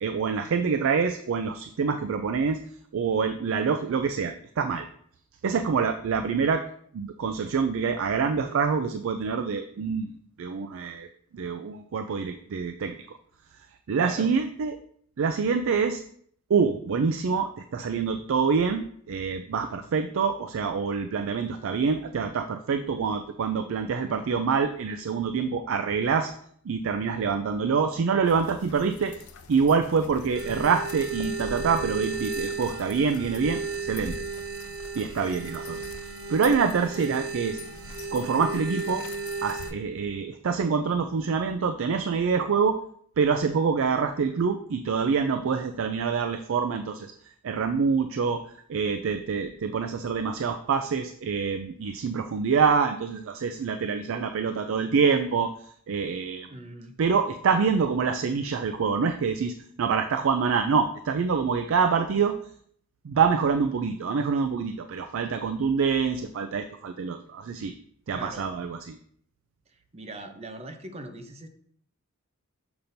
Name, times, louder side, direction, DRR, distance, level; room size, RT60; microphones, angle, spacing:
voice 1, 0.0-2.6 2.9-4.9 5.4-6.6 6.9-10.1 10.4-11.1 11.3-13.0 13.9-14.8 15.2-16.0 16.5-26.3 26.7-29.1 29.5-34.1 35.0-35.8 36.3-37.6 38.1-39.0 39.4-42.8 43.2-47.1 47.4-48.4 48.7-55.5 55.9-56.5 57.0-62.3 63.0-67.7 68.1-69.0, right 5 dB, 65° right, 8 dB, 0.4 m, -26 dB
voice 2, 14.0-14.3 56.5-56.9 68.1-68.5 69.9-71.5, right 2 dB, 30° right, 6 dB, 0.7 m, -40 dB
sound 1, 28.2-39.7, left 3 dB, 85° left, 0.6 m, -44 dB
sound 2, 30.3-39.7, right 4 dB, 85° right, 0.9 m, -35 dB
6.8 x 5.7 x 2.7 m, 0.63 s
head